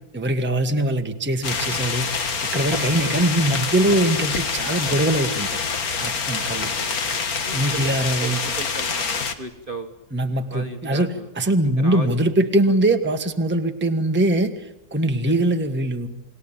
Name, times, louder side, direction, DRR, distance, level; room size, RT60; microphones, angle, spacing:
voice 1, 0.1-2.1 2.5-5.6 6.0-6.7 7.5-8.4 10.1-16.1, right 1 dB, 5° right, 6 dB, 1.3 m, -22 dB
sound 1, 1.4-9.3, left 5 dB, 55° left, 2.0 m, -26 dB
voice 2, 3.0-3.3 6.5-7.0 7.4-9.9 10.5-12.1 12.7-12.8 15.2-15.3, right 3 dB, 30° right, 6 dB, 1.4 m, -36 dB
29.0 x 20.0 x 8.9 m, 0.92 s
omnidirectional pair, 2.0 m